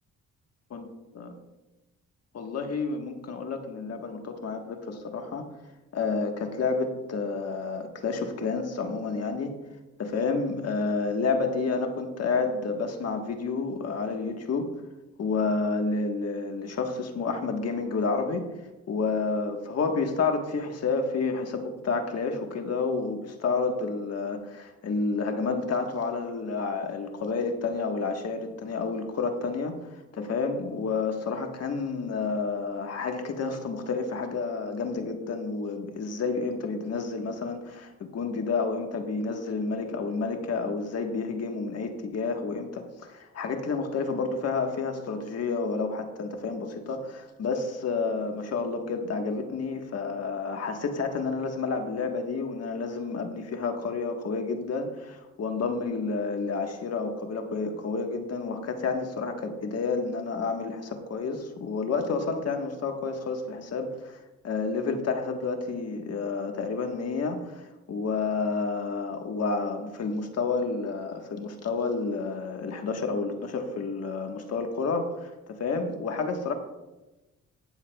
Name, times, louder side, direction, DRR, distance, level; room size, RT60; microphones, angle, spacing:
voice 1, 2.3-5.5 5.9-9.5 10.0-14.7 15.2-18.4 18.9-76.5, left 4 dB, 55° left, 5 dB, 1.4 m, -30 dB
17.5 x 7.2 x 2.3 m, 1.0 s
cardioid pair, 90°, 30 cm